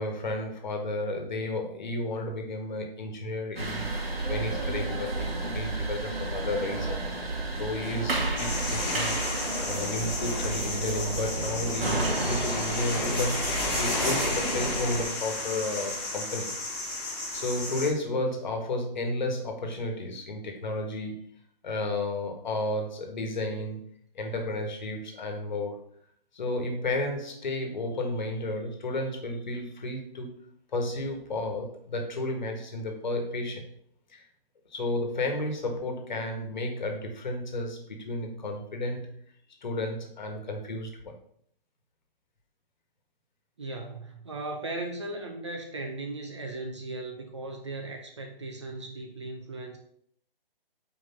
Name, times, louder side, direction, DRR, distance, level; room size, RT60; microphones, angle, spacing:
voice 1, 0.0-3.9 4.3-9.2 9.6-16.5 17.0-21.2 21.6-23.9 24.1-25.8 26.3-30.4 30.7-33.7 34.1-34.2 34.7-39.2 39.6-41.1, left 2 dB, 50° left, 3 dB, 1.5 m, -32 dB
sound 1, 3.6-15.0, right 2 dB, 85° right, 2.2 m, -31 dB
sound 2, 8.4-17.9, left 2 dB, 25° left, 1.7 m, -32 dB
voice 2, 43.6-49.8, right 2 dB, 30° right, 3 dB, 0.7 m, -37 dB
4.7 x 4.0 x 5.7 m, 0.65 s
hypercardioid pair, 170°, 29 cm